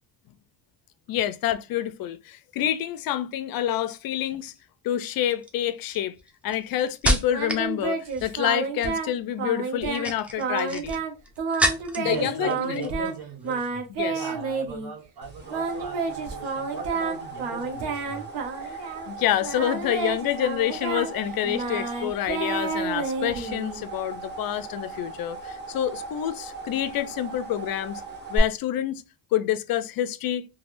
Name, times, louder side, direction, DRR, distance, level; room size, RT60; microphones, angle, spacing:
voice 1, 1.1-4.5 4.8-6.1 6.4-11.0 12.0-12.9 13.9-14.3 19.1-28.0 28.3-29.0 29.3-30.5, left 11 dB, 55° left, 0.5 m, -27 dB
sound 1, 4.2-4.6 5.3-7.7 8.0-8.5 9.7-12.2 12.5-13.1 13.4-13.7, equal, 5° right, 0.4 m, -29 dB
Singing, 7.3-9.1 9.4-10.1 10.4-11.1 11.4-13.2 13.4-14.9 15.5-19.1 19.4-23.8, right 5 dB, 70° right, 0.9 m, -30 dB
voice 2, 12.0-18.3, right 4 dB, 55° right, 1.5 m, -38 dB
sound 2, 15.2-28.4, right 3 dB, 25° right, 1.3 m, -38 dB
3.4 x 2.3 x 2.5 m
cardioid pair, 95°, 44 cm